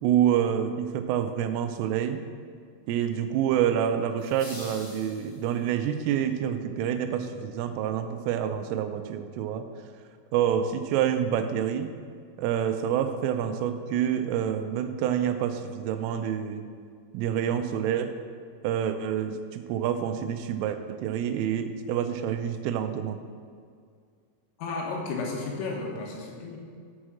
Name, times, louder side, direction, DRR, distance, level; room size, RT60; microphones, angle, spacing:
voice 1, 0.0-2.2 2.9-9.6 10.3-11.9 12.4-16.6 17.1-18.1 18.6-23.2, right 9 dB, 85° right, 8 dB, 3.2 m, -27 dB
sound 1, 4.2-5.8, left 1 dB, 35° left, 2.5 m, -45 dB
voice 2, 24.6-26.6, left 3 dB, 90° left, -1 dB, 4.1 m, -33 dB
8.1 x 6.3 x 7.3 m, 2.1 s
omnidirectional pair, 5.7 m